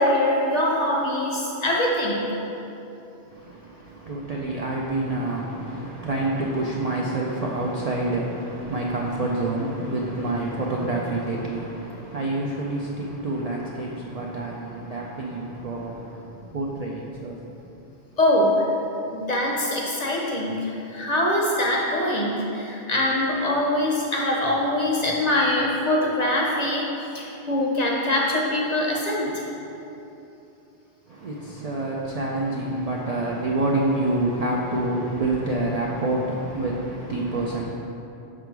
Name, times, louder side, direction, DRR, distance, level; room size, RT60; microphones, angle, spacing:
voice 1, 0.0-2.3 18.2-18.6 19.1-29.4, left 1 dB, 45° left, -2 dB, 0.7 m, -23 dB
voice 2, 3.3-17.4 31.1-37.7, right 2 dB, 55° right, -3 dB, 0.4 m, -27 dB
5.6 x 3.8 x 4.5 m, 2.9 s
omnidirectional pair, 1.2 m